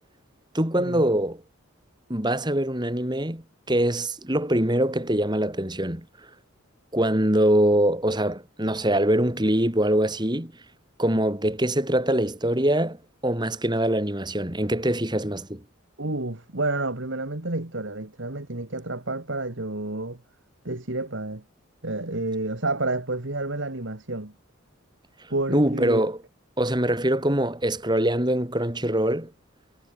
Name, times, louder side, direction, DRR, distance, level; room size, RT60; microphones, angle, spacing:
voice 1, 0.5-1.4 2.1-6.0 6.9-10.5 11.0-13.0 13.2-15.6 25.5-26.2 26.6-29.3, right 1 dB, 20° right, 2.9 m, -23 dB
voice 2, 16.0-20.2 20.6-21.4 21.8-24.3 25.3-26.0, right 2 dB, 60° right, 2.0 m, -30 dB
head